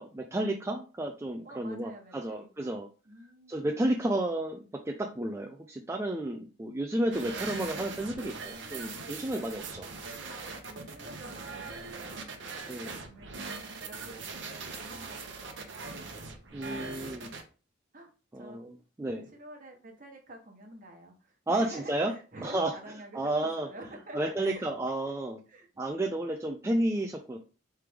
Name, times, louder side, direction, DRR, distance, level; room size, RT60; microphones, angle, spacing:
voice 1, 0.0-2.9 3.5-9.9 12.7-13.0 16.5-17.3 18.3-18.7 19.0-19.3 21.5-22.1 22.4-22.7 23.1-23.7 24.1-25.4 25.8-27.4, right 1 dB, 15° right, 2 dB, 0.3 m, -32 dB
voice 2, 1.4-2.7 3.0-3.9 10.7-16.3 17.9-18.6 19.3-24.6 25.5-25.7, right 1 dB, 40° right, 2 dB, 1.1 m, -49 dB
sound 1, 7.1-17.4, right 4 dB, 60° right, 0.8 m, -41 dB
4.7 x 3.3 x 3.4 m, 0.35 s
head